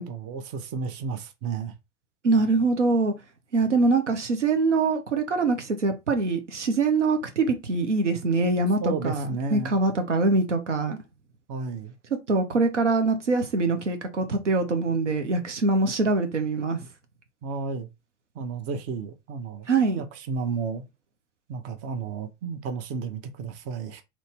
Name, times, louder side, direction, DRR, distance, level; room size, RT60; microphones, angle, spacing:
voice 1, 0.0-1.7 8.8-9.8 11.5-11.9 17.4-17.9 18.3-19.7 19.9-20.9 21.5-24.0, right 5 dB, 45° right, 0.8 m, -32 dB
voice 2, 2.2-3.1 3.5-11.0 12.3-16.9 19.7-20.0, right 3 dB, 90° right, 0.7 m, -24 dB
3.0 x 2.6 x 3.4 m
figure-of-eight pair, 80°, 35 cm